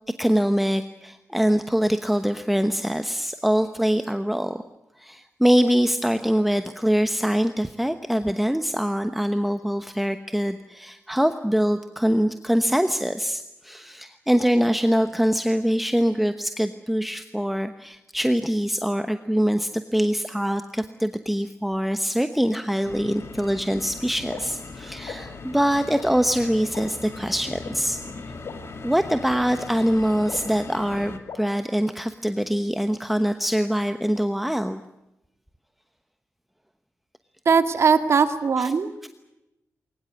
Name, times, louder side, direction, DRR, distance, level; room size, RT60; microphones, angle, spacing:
voice 1, 0.2-4.6 5.0-28.0 28.8-34.8 38.6-38.7, equal, ahead, 8 dB, 1.0 m, -24 dB
sound 1, 22.8-31.2, left 3 dB, 50° left, 2.4 m, -39 dB
sound 2, 24.3-24.4 25.1-25.2 25.9-26.0 26.7-26.8 27.6-27.7 28.4-28.5 29.3-29.4 30.3-30.4 31.3-31.4, left 6 dB, 75° left, 3.5 m, -35 dB
voice 2, 37.5-38.9, right 5 dB, 55° right, 9 dB, 2.1 m, -20 dB
22.0 x 20.0 x 9.4 m, 0.92 s
wide cardioid pair, 130°, 5 cm